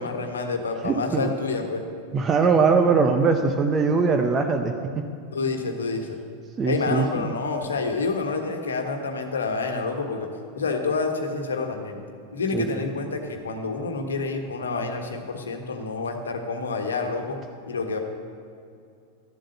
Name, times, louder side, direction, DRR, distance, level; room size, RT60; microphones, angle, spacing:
voice 1, 0.0-1.8 5.3-6.2 6.6-10.3 10.5-12.0 12.3-17.4 17.7-18.0, left 4 dB, 70° left, 5 dB, 1.3 m, -28 dB
voice 2, 0.8-1.3 2.1-5.1 6.6-7.1 12.5-12.6, right 5 dB, 20° right, 5 dB, 0.8 m, -21 dB
12.5 x 7.7 x 7.9 m, 2.4 s
figure-of-eight pair, 90°, 0 cm